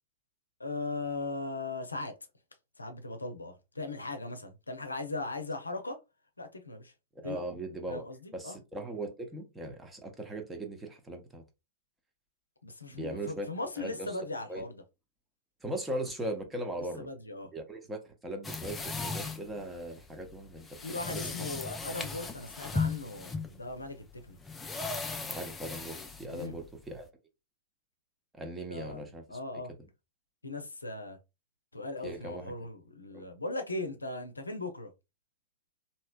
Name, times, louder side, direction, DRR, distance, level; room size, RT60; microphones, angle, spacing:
voice 1, 0.6-2.1 2.8-6.0 6.4-6.9 7.2-7.4 7.9-8.6 12.6-14.8 17.0-17.5 20.8-24.4 26.3-26.6 28.7-29.0 29.3-29.7 30.4-31.2 31.7-34.9, left 2 dB, 85° left, 0.6 m, -38 dB
voice 2, 7.2-8.0 8.3-11.4 12.9-13.5 13.8-14.1 14.5-14.6 15.6-17.1 17.5-20.8 21.1-21.2 25.2-27.1 28.3-29.4 32.0-32.5 33.1-33.2, right 1 dB, 10° right, 0.8 m, -39 dB
sound 1, 18.4-27.1, left 4 dB, 15° left, 0.5 m, -37 dB
3.1 x 2.8 x 2.2 m
figure-of-eight pair, 100°, 0 cm